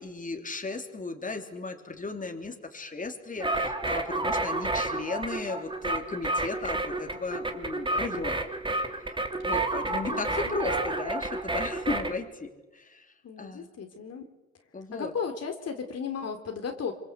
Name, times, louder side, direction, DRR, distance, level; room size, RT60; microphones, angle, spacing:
voice 1, 0.0-8.5 9.4-13.7 14.7-15.1, left 3 dB, 25° left, 4 dB, 3.2 m, -36 dB
sound 1, 3.4-12.1, right 2 dB, 15° right, 2.8 m, -30 dB
voice 2, 9.8-10.6 13.2-14.3 14.9-16.9, left 6 dB, 55° left, 5 dB, 3.5 m, -35 dB
25.5 x 25.0 x 8.2 m, 1.1 s
cardioid pair, 90°, 30 cm